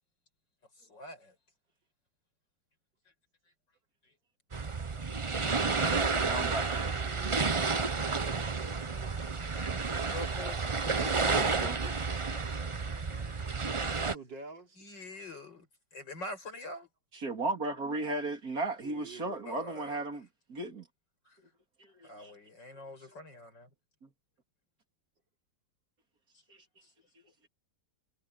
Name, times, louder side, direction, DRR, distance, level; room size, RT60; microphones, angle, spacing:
voice 1, 0.8-1.3 4.0-4.1 10.1-13.5 14.8-16.9 19.5-20.0 21.2-21.4 22.0-23.7, left 2 dB, 75° left, 8.0 m, -46 dB
sound 1, 4.5-14.2, right 4 dB, 35° right, 0.5 m, -31 dB
voice 2, 5.4-5.7 6.2-6.9 10.9-11.8 17.1-20.9 21.8-22.3 24.0-24.1, right 2 dB, 50° right, 3.8 m, -36 dB
voice 3, 6.4-10.1 14.1-14.8 15.1-15.2 18.8-19.8, right 3 dB, 80° right, 4.1 m, -50 dB
omnidirectional pair, 2.0 m